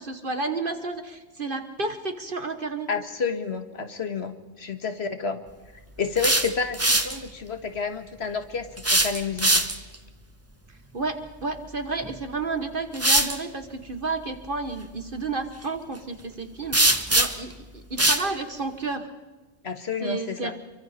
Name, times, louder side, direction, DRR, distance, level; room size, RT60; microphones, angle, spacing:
voice 1, 0.0-2.9 10.7-19.1 20.0-20.5, right 3 dB, 50° right, 8 dB, 1.5 m, -31 dB
voice 2, 2.9-5.4 6.0-9.6 19.6-20.5, left 5 dB, 70° left, 8 dB, 1.9 m, -30 dB
sound 1, 6.0-7.2 8.8-9.9 12.0-12.2 12.9-13.4 16.7-17.5 18.0-18.3, right 1 dB, 15° right, 1.2 m, -21 dB
29.5 x 23.5 x 4.3 m, 1.2 s
omnidirectional pair, 1.1 m